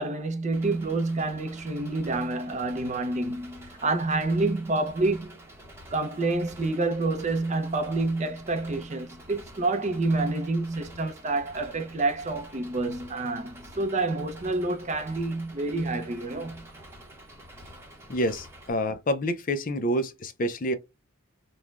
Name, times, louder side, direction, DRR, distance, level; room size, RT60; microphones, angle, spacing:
voice 1, 0.0-5.3 5.9-16.7, right 2 dB, 30° right, 0.5 m, -28 dB
Engine, 0.5-18.7, right 1 dB, 10° right, 0.8 m, -48 dB
voice 2, 18.1-20.7, equal, 40° left, 0.4 m, -28 dB
3.1 x 2.1 x 2.4 m
head